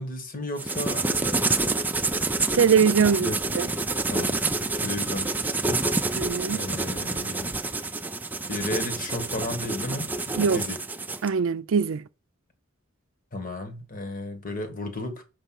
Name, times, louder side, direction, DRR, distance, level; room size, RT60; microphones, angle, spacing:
voice 1, 0.0-1.5 3.2-3.4 4.1-5.8 6.5-7.6 8.5-10.8 13.3-15.2, left 1 dB, 40° left, 1.5 m, -34 dB
sound 1, 0.6-11.3, right 3 dB, 10° right, 0.4 m, -28 dB
voice 2, 2.5-3.7 6.2-6.6 10.4-10.6 11.2-12.1, right 6 dB, 75° right, 0.4 m, -22 dB
6.8 x 5.3 x 5.9 m
head